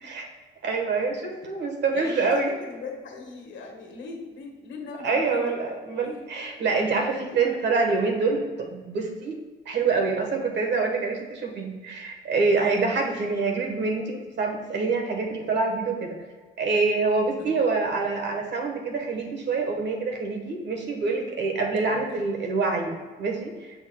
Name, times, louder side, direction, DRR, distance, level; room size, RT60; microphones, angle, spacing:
voice 1, 0.6-2.5 5.0-9.4 9.6-16.2 16.6-23.5, right 4 dB, 60° right, 2 dB, 1.2 m, -26 dB
voice 2, 1.9-5.5 6.0-6.2 17.4-17.5 21.8-22.0, left 4 dB, 70° left, 1 dB, 1.4 m, -40 dB
6.9 x 6.2 x 2.3 m, 1.4 s
cardioid pair, 90°, 20 cm